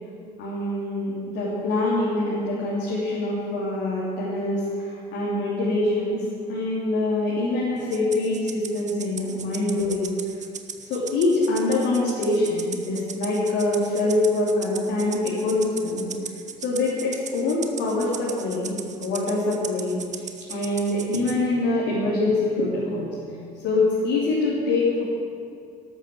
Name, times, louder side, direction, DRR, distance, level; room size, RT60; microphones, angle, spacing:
voice 1, 0.4-10.0 10.8-16.1 16.6-23.1 23.6-25.0, left 2 dB, 65° left, -8 dB, 3.4 m, -24 dB
Rattle (instrument), 7.9-21.4, right 6 dB, 35° right, 1.2 m, -38 dB
13.0 x 12.0 x 6.9 m, 2.3 s
figure-of-eight pair, 50°, 20 cm